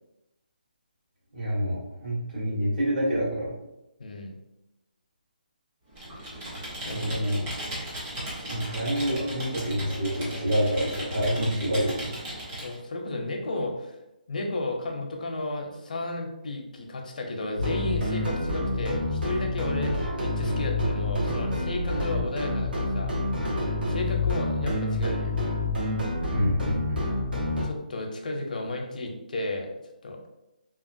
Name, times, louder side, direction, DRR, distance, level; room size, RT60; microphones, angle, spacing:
voice 1, 1.3-3.5 6.9-7.4 8.5-12.1 26.3-27.1, equal, 65° right, -5 dB, 1.4 m, -27 dB
voice 2, 4.0-4.3 6.7-7.3 12.6-13.9 14.3-23.1 23.8-25.3 27.6-29.7 30.0-30.2, left 2 dB, 60° left, 2 dB, 0.6 m, -33 dB
Computer keyboard, 5.9-12.8, right 1 dB, 15° right, 0.6 m, -36 dB
sound 1, 17.6-27.6, left 2 dB, 85° right, 1.1 m, -28 dB
2.9 x 2.4 x 2.5 m, 0.92 s
hypercardioid pair, 170°, 5 cm